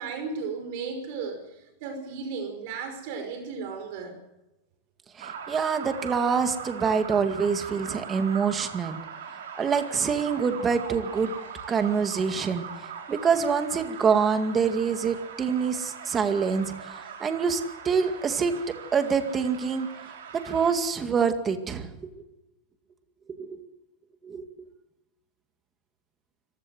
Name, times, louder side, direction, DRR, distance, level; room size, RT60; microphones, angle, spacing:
voice 1, 0.0-1.4 1.8-4.2, right 5 dB, 55° right, 6 dB, 5.2 m, -34 dB
voice 2, 5.2-9.0 9.6-11.3 11.7-12.7 13.1-19.9 20.3-21.9 23.4-23.7 24.2-24.5, right 6 dB, 20° right, 8 dB, 2.1 m, -26 dB
sound 1, 5.2-20.7, right 6 dB, 85° right, 5.4 m, -41 dB
25.5 x 15.5 x 7.9 m, 0.94 s
supercardioid pair, 145°, 0 cm